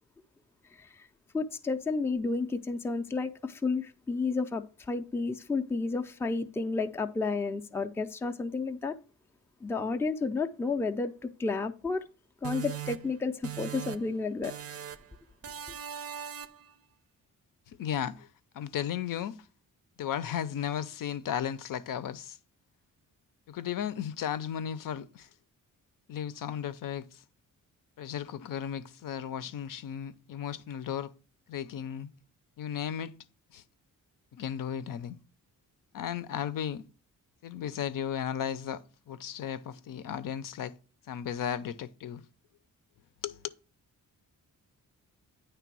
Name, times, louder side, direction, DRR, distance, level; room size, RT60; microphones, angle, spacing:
voice 1, 1.3-8.9 9.6-12.0 12.4-14.5, left 4 dB, 5° left, 0.4 m, -31 dB
sound 1, 12.4-14.2 14.4-15.1 15.4-16.7, right 10 dB, 45° right, 0.5 m, -40 dB
voice 2, 17.7-18.3 18.5-19.4 20.0-22.4 23.5-25.3 26.1-27.2 28.0-31.1 31.5-32.1 32.6-33.1 33.5-33.6 34.3-35.2 35.9-36.8 37.4-40.7 41.1-42.2 43.2-43.4, left 9 dB, 70° left, 0.6 m, -35 dB
9.2 x 3.3 x 6.1 m
wide cardioid pair, 145°, 34 cm